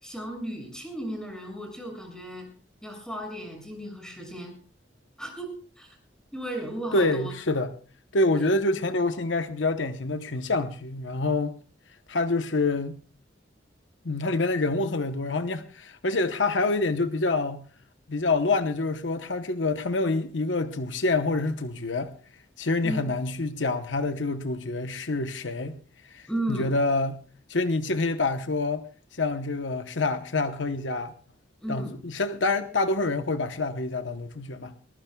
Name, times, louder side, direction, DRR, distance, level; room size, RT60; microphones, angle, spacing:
voice 1, 0.0-2.5 2.8-4.5 5.2-5.9 6.3-7.3 8.3-8.5 22.8-23.1 26.3-26.7 31.6-31.9, right 1 dB, 5° left, 6.5 m, -35 dB
voice 2, 6.9-7.7 8.1-11.6 12.1-12.9 14.0-17.6 18.1-22.1 22.6-25.8 26.0-27.2 27.5-28.9 29.1-31.1 31.7-34.7, left 2 dB, 75° left, 1.0 m, -27 dB
22.5 x 20.5 x 2.3 m
head